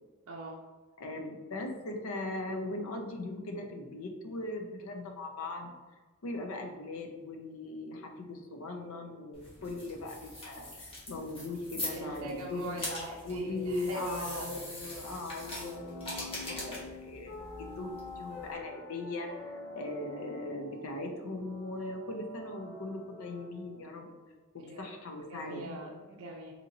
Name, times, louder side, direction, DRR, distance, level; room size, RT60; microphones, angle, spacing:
voice 1, 0.3-0.6 11.9-14.5 24.6-24.9 25.3-26.5, right 2 dB, 75° right, -1 dB, 0.5 m, -42 dB
voice 2, 1.0-5.7 6.2-12.9 13.2-24.1 24.5-25.8, left 2 dB, 70° left, 3 dB, 0.5 m, -39 dB
sound 1, 9.3-18.6, left 1 dB, 25° left, 1.0 m, -43 dB
sound 2, 15.4-24.0, left 1 dB, ahead, 0.3 m, -48 dB
sound 3, 17.3-20.8, left 3 dB, 45° left, 1.4 m, -48 dB
4.1 x 2.8 x 2.5 m, 1.3 s
head